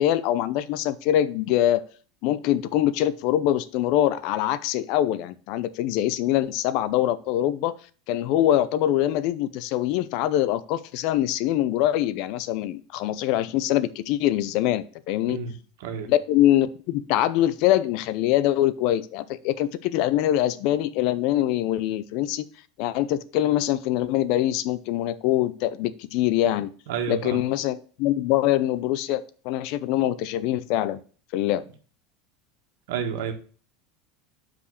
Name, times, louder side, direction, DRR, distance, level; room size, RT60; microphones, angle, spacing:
voice 1, 0.0-1.8 2.2-7.8 8.1-15.4 16.0-22.4 22.8-26.7 27.1-31.0 31.3-31.6, left 13 dB, 50° left, 16 dB, 0.5 m, -24 dB
voice 2, 15.8-16.1 26.9-27.4 32.9-33.3, right 7 dB, 70° right, 5 dB, 1.7 m, -30 dB
5.7 x 5.1 x 6.4 m, 0.40 s
supercardioid pair, 170°, 0 cm